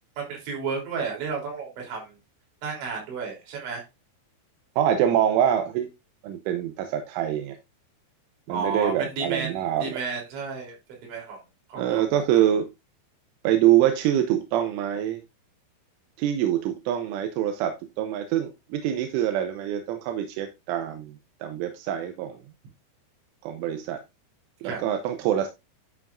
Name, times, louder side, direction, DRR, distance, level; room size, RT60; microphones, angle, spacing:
voice 1, 0.2-2.1 2.6-3.8 8.5-11.4 11.7-12.2 24.6-24.8, right 5 dB, 70° right, 5.7 m, -32 dB
voice 2, 4.8-5.9 6.2-7.6 8.5-9.8 11.8-12.7 13.5-15.2 16.2-21.1 21.4-22.4 23.4-24.0 24.6-25.5, right 11 dB, 85° right, 3.4 m, -25 dB
11.5 x 7.2 x 2.6 m
omnidirectional pair, 5.6 m